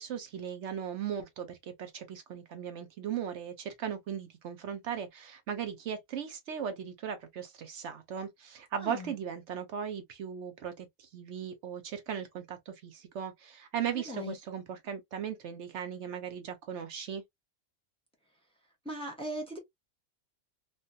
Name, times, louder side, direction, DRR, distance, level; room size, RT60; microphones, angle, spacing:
voice 1, 0.0-17.2, right 8 dB, 70° right, 0.9 m, -38 dB
voice 2, 8.8-9.1 13.9-14.3 18.8-19.6, equal, 5° left, 0.9 m, -38 dB
3.2 x 2.2 x 2.5 m
omnidirectional pair, 1.3 m